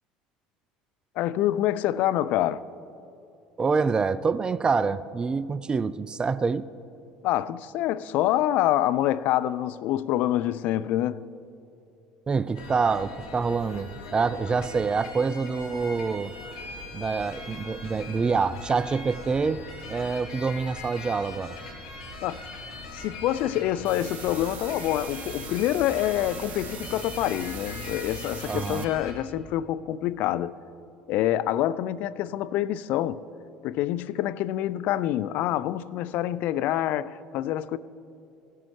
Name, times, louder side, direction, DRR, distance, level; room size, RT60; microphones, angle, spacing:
voice 1, 1.2-2.6 7.2-11.3 22.2-22.4 22.9-30.5 31.1-33.2 33.6-37.8, left 13 dB, 55° left, 0.3 m, -26 dB
voice 2, 3.6-6.7 12.3-16.3 16.9-19.6 19.9-21.6 28.5-28.9, right 5 dB, 25° right, 0.3 m, -26 dB
sound 1, 12.5-29.1, left 2 dB, 75° left, 1.6 m, -40 dB
sound 2, 23.8-28.8, right 9 dB, 50° right, 0.7 m, -42 dB
16.0 x 12.5 x 3.2 m
figure-of-eight pair, 65°, 3 cm